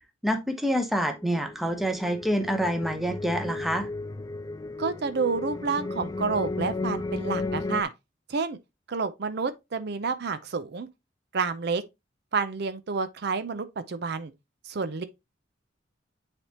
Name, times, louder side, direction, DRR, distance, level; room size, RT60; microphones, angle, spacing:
voice 1, 0.2-3.9, equal, ahead, 0.8 m, -27 dB
sound 1, 1.1-7.8, left 3 dB, 20° left, 0.3 m, -34 dB
voice 2, 4.8-7.9 8.3-8.6 8.9-10.9 11.3-11.8 12.3-14.3 14.6-15.0, right 4 dB, 60° right, 0.6 m, -29 dB
9.8 x 3.5 x 2.9 m
head